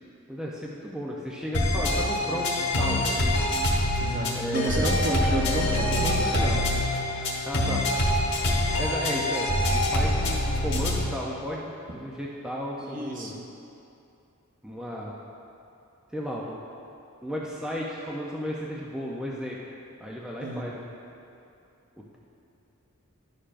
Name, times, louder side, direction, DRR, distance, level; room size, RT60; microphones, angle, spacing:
voice 1, 0.3-3.4 4.3-4.9 7.4-7.8 8.8-13.4 14.6-15.1 16.1-16.6 17.2-19.6 20.0-20.9, equal, 5° right, -4 dB, 0.5 m, -34 dB
sound 1, 1.5-11.1, left 1 dB, 55° left, 1.2 m, -25 dB
voice 2, 4.0-6.6 12.8-13.5 20.4-20.8, right 1 dB, 40° right, -1 dB, 0.8 m, -30 dB
11.5 x 6.6 x 2.5 m, 2.6 s
head